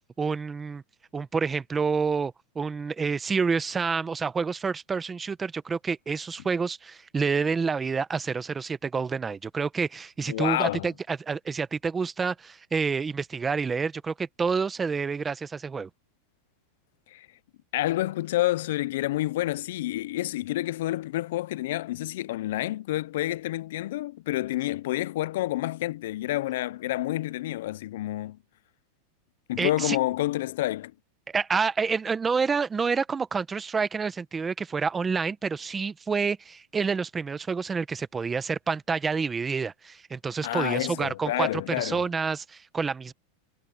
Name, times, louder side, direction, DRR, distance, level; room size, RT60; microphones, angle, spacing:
voice 1, 0.2-0.8 1.1-15.9 29.6-30.0 31.3-43.1, right 5 dB, 10° right, 0.7 m, -28 dB
voice 2, 10.3-10.9 17.1-17.3 17.7-28.4 29.5-30.9 40.4-42.1, left 15 dB, 60° left, 0.3 m, -29 dB
supercardioid pair, 175°, 0 cm